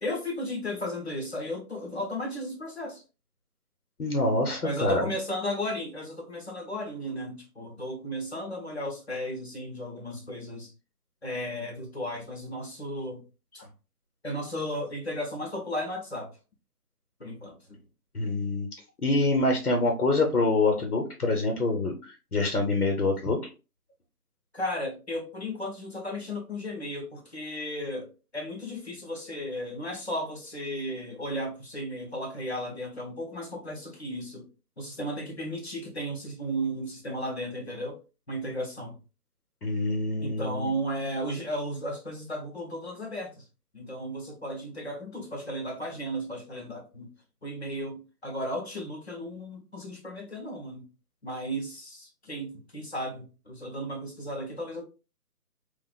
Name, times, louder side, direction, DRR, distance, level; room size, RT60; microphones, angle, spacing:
voice 1, 0.0-3.0 4.6-10.7 11.2-13.2 13.5-13.7 14.2-16.3 17.2-17.8 24.5-34.5 34.8-38.0 38.3-39.0 40.2-43.4 43.7-47.1 47.4-50.8 51.2-54.8, equal, 45° left, 0.8 m, -35 dB
voice 2, 4.0-5.1 18.1-18.7 19.0-23.4 39.6-40.7, left 2 dB, 65° left, 1.0 m, -26 dB
4.2 x 2.4 x 2.3 m
figure-of-eight pair, 170°, 47 cm